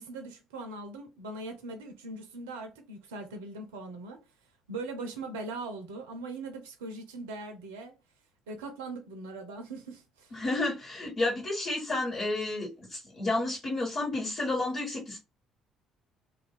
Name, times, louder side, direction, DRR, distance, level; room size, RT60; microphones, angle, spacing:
voice 1, 0.0-4.2 4.7-7.9 8.5-10.3, right 2 dB, 75° right, 0.5 m, -40 dB
voice 2, 10.3-15.2, left 2 dB, 50° left, 1.3 m, -31 dB
2.4 x 2.2 x 3.5 m
hypercardioid pair, 50°, 0 cm